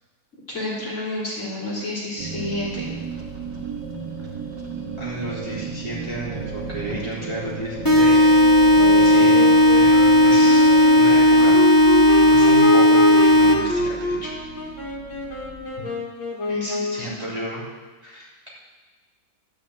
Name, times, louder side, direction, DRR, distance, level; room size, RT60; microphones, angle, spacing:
voice 1, 0.5-2.9 16.5-17.1, left 1 dB, 40° left, -6 dB, 3.4 m, -30 dB
sound 1, 2.2-15.7, right 4 dB, 70° right, 2.4 m, -35 dB
voice 2, 5.0-8.3 8.9-11.6 11.9-14.3 16.9-17.6 18.0-18.5, right 1 dB, 20° right, -8 dB, 3.3 m, -32 dB
sound 2, 7.8-13.8, left 1 dB, 15° left, 1.1 m, -14 dB
Wind instrument woodwind instrument, 8.8-17.2, left 1 dB, 80° left, 2.6 m, -27 dB
13.0 x 6.3 x 7.9 m, 1.4 s
omnidirectional pair, 2.0 m